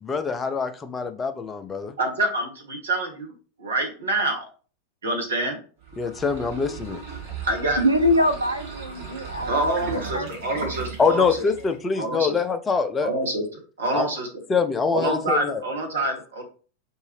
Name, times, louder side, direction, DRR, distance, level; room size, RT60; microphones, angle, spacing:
voice 1, 0.0-1.9 6.0-7.0 11.0-13.1 13.9-14.1 14.5-15.6, left 5 dB, 15° left, 0.5 m, -24 dB
voice 2, 2.0-3.3 3.6-4.4 5.0-5.6 7.5-7.8 9.5-11.5 11.9-12.4 13.0-13.4 13.8-14.3 14.9-16.4, right 2 dB, 70° right, 1.2 m, -26 dB
sound 1, 5.8-11.8, right 5 dB, 50° right, 1.4 m, -36 dB
voice 3, 7.8-10.3, equal, 85° right, 0.4 m, -24 dB
4.9 x 2.7 x 3.1 m
figure-of-eight pair, 90°, 0 cm